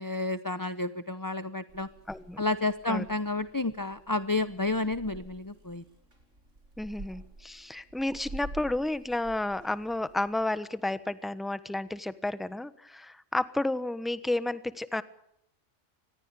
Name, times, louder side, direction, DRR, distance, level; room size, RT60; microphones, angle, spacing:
voice 1, 0.0-1.9 2.4-5.8, left 2 dB, 20° left, 13 dB, 0.8 m, -30 dB
Purr / Meow, 1.7-10.5, right 1 dB, 80° right, 5.5 m, -49 dB
voice 2, 2.1-2.4 2.9-3.0 6.8-15.0, left 2 dB, ahead, 14 dB, 1.0 m, -31 dB
26.0 x 20.5 x 6.7 m, 0.75 s
omnidirectional pair, 1.3 m